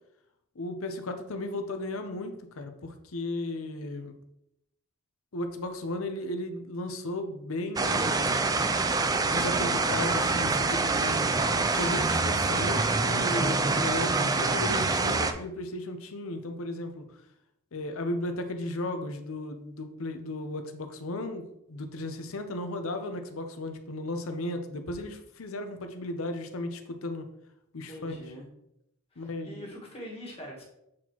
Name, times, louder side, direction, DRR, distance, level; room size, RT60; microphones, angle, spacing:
voice 1, 0.6-4.1 5.3-8.4 9.2-11.3 11.7-17.0 17.7-27.2 27.7-28.2 29.2-29.7, left 1 dB, 70° left, 7 dB, 0.7 m, -35 dB
sound 1, 7.8-15.3, right 3 dB, 15° right, 0.3 m, -26 dB
voice 2, 27.9-28.5 29.1-30.6, equal, 30° left, -3 dB, 1.7 m, -43 dB
7.5 x 4.2 x 3.0 m, 0.82 s
head